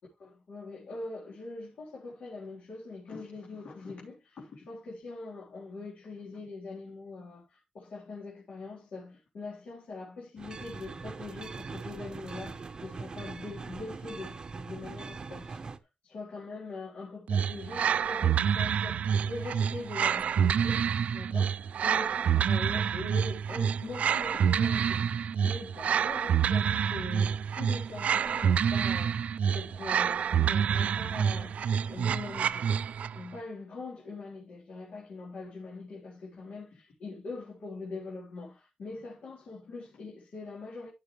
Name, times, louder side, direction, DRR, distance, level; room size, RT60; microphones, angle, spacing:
voice 1, 0.2-15.6 16.0-20.8 21.1-32.7 33.1-40.9, left 3 dB, 60° left, 3.8 m, -42 dB
sound 1, 10.4-15.8, right 4 dB, 35° right, 0.9 m, -42 dB
sound 2, 17.3-33.2, right 8 dB, 65° right, 0.4 m, -27 dB
14.5 x 6.4 x 3.2 m
wide cardioid pair, 165°, 3 cm